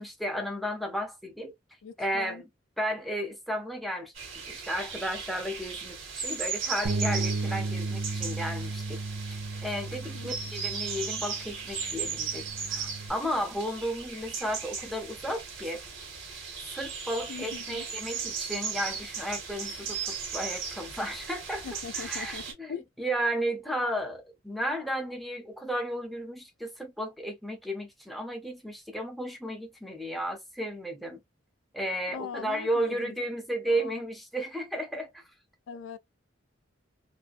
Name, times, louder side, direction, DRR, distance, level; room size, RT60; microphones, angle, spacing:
voice 1, 0.0-1.5 2.0-2.4 2.8-4.1 4.5-9.0 9.3-12.4 12.7-15.8 16.7-21.7 21.9-31.2 31.7-35.2, equal, ahead, 0.6 m, -33 dB
voice 2, 1.8-2.4 10.1-10.3 17.3-17.8 21.6-22.8 32.1-33.2 33.7-34.0 35.7-36.0, left 6 dB, 70° left, 0.4 m, -40 dB
sound 1, 4.1-22.5, right 6 dB, 85° right, 1.2 m, -37 dB
Bass guitar, 6.8-13.1, right 3 dB, 60° right, 0.5 m, -34 dB
2.5 x 2.1 x 2.4 m
head